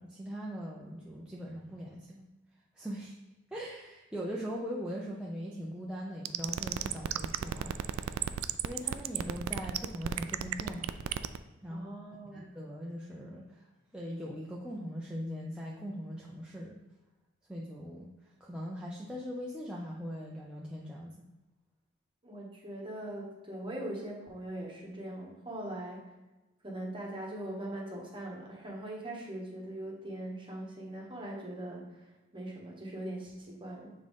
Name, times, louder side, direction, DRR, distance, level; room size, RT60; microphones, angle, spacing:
voice 1, 0.0-2.3 2.8-3.2 3.5-7.8 8.6-10.9 11.6-11.9 12.2-13.6 13.9-16.8 17.5-18.1 18.4-21.2, equal, 5° right, -5 dB, 0.5 m, -40 dB
sound 1, 6.3-11.4, right 10 dB, 90° right, 0.3 m, -32 dB
voice 2, 11.7-12.5 22.2-26.1 26.6-32.0 32.3-33.9, right 1 dB, 25° right, -2 dB, 1.3 m, -41 dB
6.9 x 3.7 x 3.7 m, 1.1 s
head